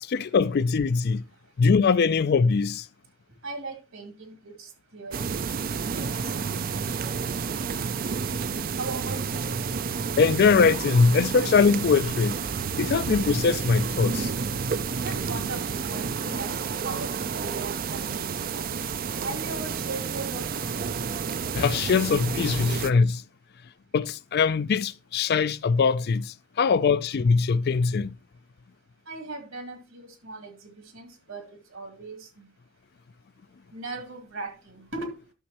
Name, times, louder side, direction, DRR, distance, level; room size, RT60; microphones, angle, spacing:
voice 1, 0.0-1.2 1.6-2.9 10.2-12.4 12.8-14.3 21.5-23.2 23.9-28.2, left 5 dB, 50° left, 0.4 m, -22 dB
voice 2, 3.4-8.4 8.8-9.5 15.0-16.5 16.8-18.9 19.2-20.4 26.7-26.8 29.1-32.5 33.7-35.2, right 3 dB, 65° right, 2.3 m, -39 dB
sound 1, 5.1-22.9, right 6 dB, 40° right, 0.4 m, -30 dB
11.5 x 6.3 x 2.9 m
head